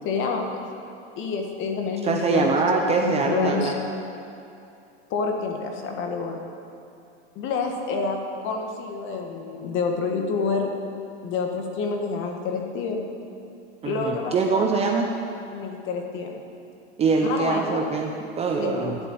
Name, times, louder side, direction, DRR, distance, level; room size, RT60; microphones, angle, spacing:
voice 1, 0.0-0.6 1.2-2.6 3.0-3.7 5.1-6.4 7.3-8.2 8.4-10.7 11.2-13.0 13.8-14.7 15.5-16.4 17.2-17.9 18.6-18.9, left 4 dB, 35° left, 3 dB, 1.6 m, -28 dB
voice 2, 2.0-3.7 13.8-15.1 17.0-19.0, right 4 dB, 20° right, 2 dB, 0.7 m, -23 dB
11.0 x 6.9 x 8.7 m, 2.7 s
supercardioid pair, 135°, 35 cm